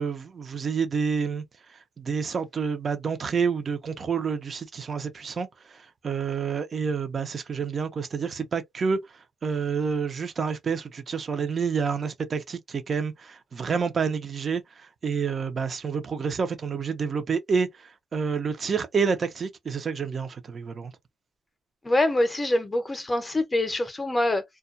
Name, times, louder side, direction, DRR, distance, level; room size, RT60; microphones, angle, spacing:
voice 1, 0.0-20.9, right 5 dB, 40° right, 0.5 m, -29 dB
voice 2, 21.8-24.4, left 1 dB, 20° left, 0.7 m, -24 dB
2.2 x 2.2 x 2.5 m
cardioid pair, 90°, 0 cm